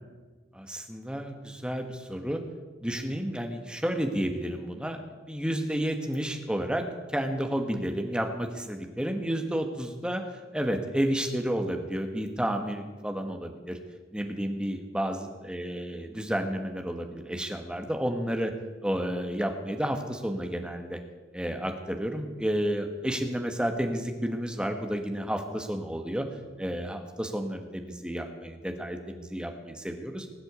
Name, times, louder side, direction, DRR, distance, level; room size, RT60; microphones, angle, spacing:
voice 1, 0.5-2.4 2.8-5.0 5.3-6.8 7.1-10.2 10.5-13.8 14.1-18.5 18.8-21.0 21.3-26.3 26.6-30.3, equal, 5° right, 5 dB, 1.3 m, -31 dB
19.5 x 8.1 x 8.0 m, 1.4 s
head